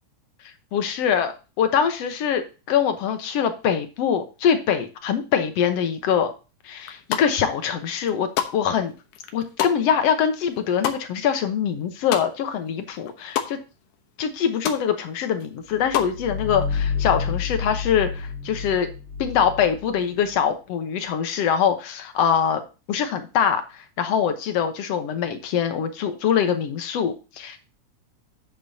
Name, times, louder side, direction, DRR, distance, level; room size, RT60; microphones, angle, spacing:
voice 1, 0.7-6.3 6.6-8.3 8.5-8.9 9.3-13.6 14.2-18.9 19.2-22.6 22.9-27.6, left 8 dB, 65° left, 8 dB, 1.9 m, -23 dB
sound 1, 6.8-7.5 7.9-12.7 12.9-13.5 13.9-14.0 14.2-14.8 15.2-16.2, left 10 dB, 85° left, 2.6 m, -29 dB
sound 2, 15.7-20.4, left 5 dB, 30° left, 1.9 m, -29 dB
11.5 x 8.4 x 2.8 m, 0.31 s
omnidirectional pair, 3.5 m